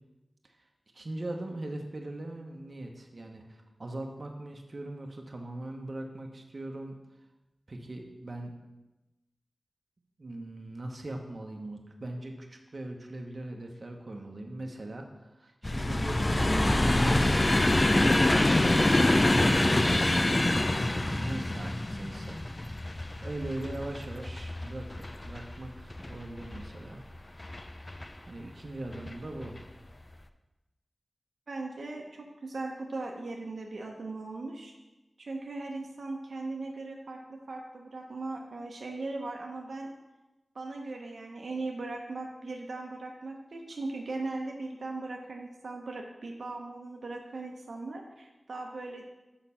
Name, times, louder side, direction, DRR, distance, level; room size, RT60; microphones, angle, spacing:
voice 1, 0.9-7.0 7.7-8.5 10.2-16.8 18.6-22.7 23.2-27.0 28.3-29.6, right 1 dB, 50° right, 2 dB, 1.0 m, -41 dB
sound 1, 15.6-26.7 27.4-28.1 28.9-29.1 29.4-29.6, left 1 dB, 30° left, 0.5 m, -26 dB
voice 2, 31.5-34.7 35.2-39.9 40.5-49.1, right 2 dB, 80° right, 1 dB, 0.9 m, -38 dB
6.5 x 5.9 x 5.6 m, 1.0 s
wide cardioid pair, 85°, 0 cm